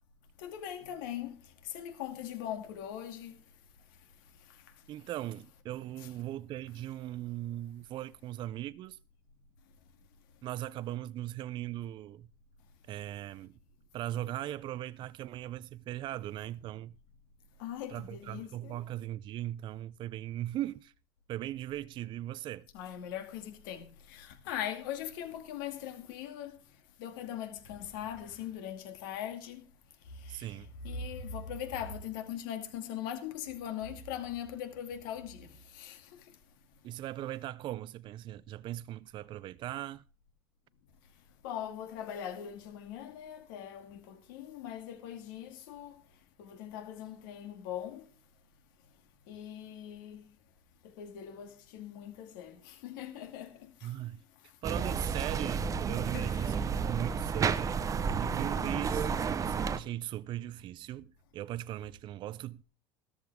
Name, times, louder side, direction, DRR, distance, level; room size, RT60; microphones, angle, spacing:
voice 1, 0.4-3.4 4.5-4.6 17.6-18.8 22.7-26.6 27.0-29.7 30.1-30.5 30.8-36.3 41.4-46.0 46.4-48.1 49.3-50.3 50.8-53.9 56.1-56.5, left 9 dB, 75° left, 2.4 m, -41 dB
voice 2, 4.9-9.0 10.4-12.3 12.9-13.6 13.9-17.0 17.9-20.9 21.3-22.7 30.3-30.7 36.8-40.0 53.8-54.2 54.6-57.9 58.2-59.1 59.4-62.6, right 13 dB, 45° right, 0.5 m, -39 dB
sound 1, 54.6-59.8, right 6 dB, 30° right, 0.9 m, -31 dB
13.5 x 13.5 x 3.5 m
hypercardioid pair, 90°, 11 cm